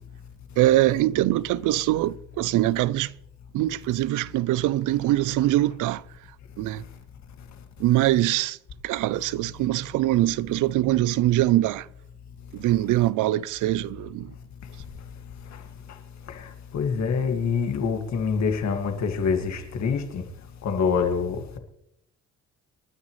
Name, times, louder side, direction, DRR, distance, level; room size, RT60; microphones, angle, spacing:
voice 1, 0.6-3.1 3.5-6.0 6.6-6.8 7.8-8.5 8.9-11.8 12.6-13.9, right 15 dB, 85° right, 0.5 m, -22 dB
voice 2, 16.7-20.2 20.6-21.4, left 5 dB, 65° left, 2.1 m, -25 dB
26.5 x 9.6 x 3.2 m
cardioid pair, 90°, 30 cm